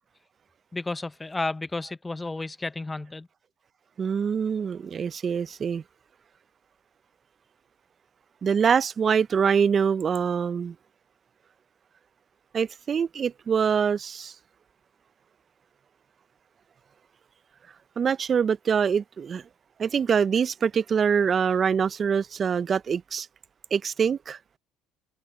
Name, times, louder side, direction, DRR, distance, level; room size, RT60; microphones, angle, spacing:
voice 1, 0.7-3.3, left 2 dB, 15° left, 0.6 m, -32 dB
voice 2, 4.0-5.8 8.4-10.7 12.5-14.3 18.0-19.4 19.8-23.3 23.7-24.4, right 7 dB, 35° right, 0.4 m, -24 dB
open air
supercardioid pair, 90°, 0 cm